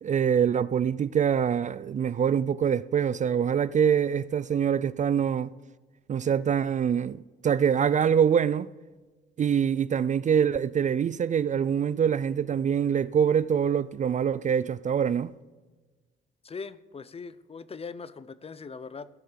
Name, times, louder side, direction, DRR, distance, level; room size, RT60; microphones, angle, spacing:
voice 1, 0.0-5.5 6.1-8.7 9.4-15.3, right 8 dB, 40° right, 0.4 m, -24 dB
voice 2, 16.4-19.1, left 5 dB, 30° left, 0.6 m, -40 dB
16.5 x 6.5 x 6.9 m
cardioid pair, 90°, 20 cm